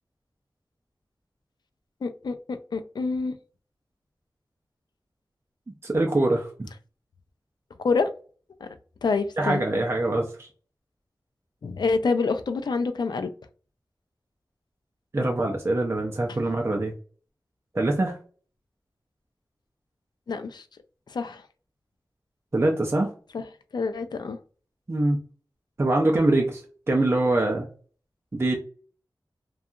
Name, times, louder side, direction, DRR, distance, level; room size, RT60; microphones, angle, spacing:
voice 1, 2.0-3.3 7.8-8.1 8.6-8.7 9.0-9.6 11.6-13.3 20.3-20.6 21.1-21.4 23.3-23.4 23.7-24.4, left 4 dB, 70° left, 0.4 m, -27 dB
voice 2, 5.8-6.5 9.4-10.5 15.1-16.9 17.7-18.2 22.5-23.1 24.9-25.2 25.8-27.7 28.3-28.5, right 2 dB, 35° right, 0.5 m, -24 dB
2.7 x 2.3 x 2.4 m
wide cardioid pair, 75°, 8 cm